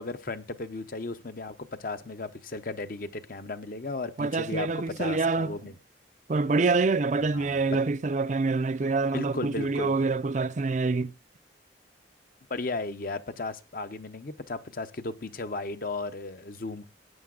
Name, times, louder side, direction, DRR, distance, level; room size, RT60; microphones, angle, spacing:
voice 1, 0.0-5.8 7.2-7.8 9.1-10.0 12.5-16.9, left 3 dB, 50° left, 0.8 m, -35 dB
voice 2, 4.2-5.6 6.3-11.1, right 3 dB, 40° right, 0.5 m, -26 dB
19.0 x 9.4 x 2.4 m
head